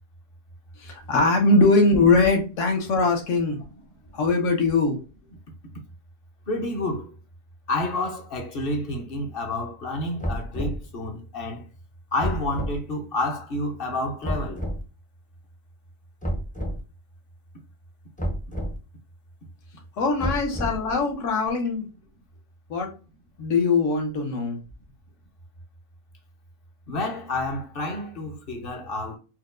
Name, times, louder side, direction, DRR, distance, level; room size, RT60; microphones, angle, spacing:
voice 1, 0.8-3.6 4.1-5.0 20.0-21.9 22.7-22.9 23.4-24.6, left 3 dB, 70° left, 1.3 m, -21 dB
voice 2, 6.5-7.1 7.7-11.6 12.1-14.7 26.9-29.2, left 2 dB, 50° left, 0.9 m, -29 dB
sound 1, 10.2-10.8 12.2-12.8 14.2-14.8 16.2-16.8 18.2-18.8 20.2-20.9, right 1 dB, 15° left, 0.3 m, -29 dB
4.4 x 2.2 x 2.4 m
omnidirectional pair, 1.3 m